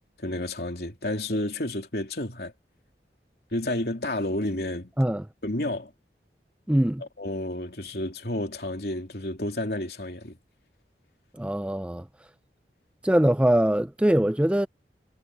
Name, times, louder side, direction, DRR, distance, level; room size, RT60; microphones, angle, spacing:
voice 1, 0.2-2.5 3.5-4.9 5.4-5.9 7.2-10.4, left 1 dB, 65° left, 3.1 m, -30 dB
voice 2, 6.7-7.0 11.3-12.1 13.0-14.7, right 1 dB, 5° right, 0.3 m, -22 dB
head